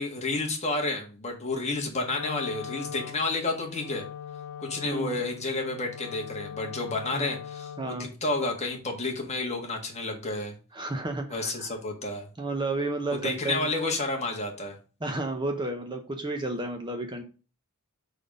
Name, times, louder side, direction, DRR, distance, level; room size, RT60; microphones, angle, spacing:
voice 1, 0.0-4.0 4.6-10.5 11.3-12.3 13.1-14.7, left 2 dB, 30° left, 1 dB, 1.5 m, -30 dB
Wind instrument woodwind instrument, 2.0-8.1, left 8 dB, 65° left, 0.5 m, -41 dB
voice 2, 4.8-5.2 7.1-7.3 7.8-8.1 10.7-11.7 12.4-13.7 15.0-17.2, right 2 dB, 20° right, 4 dB, 0.7 m, -32 dB
5.1 x 4.1 x 5.1 m, 0.35 s
head